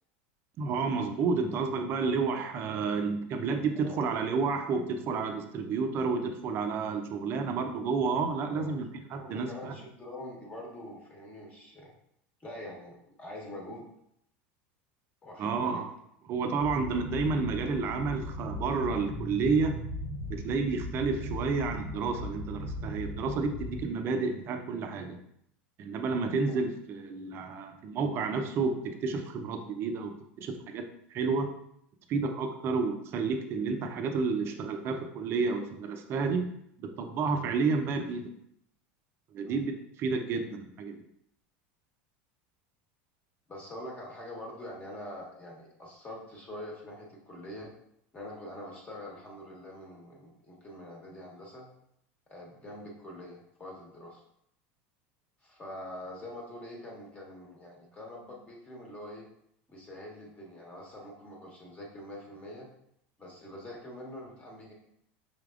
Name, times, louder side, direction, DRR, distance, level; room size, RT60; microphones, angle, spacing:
voice 1, 0.6-9.8 15.4-15.9 16.3-19.8 20.3-25.2 25.8-31.5 32.1-36.5 36.8-38.3 39.3-41.0, right 4 dB, 40° right, 6 dB, 0.6 m, -30 dB
voice 2, 3.8-4.1 8.4-8.8 9.2-11.9 12.4-13.8 15.2-15.8 39.4-39.6 43.5-47.7 48.1-51.7 52.3-54.2 55.4-59.3 59.7-62.7 63.2-64.7, left 1 dB, 20° left, -2 dB, 1.2 m, -44 dB
sound 1, 16.6-23.8, left 1 dB, 70° left, 1.4 m, -38 dB
5.7 x 3.4 x 2.5 m, 0.73 s
supercardioid pair, 130°, 6 cm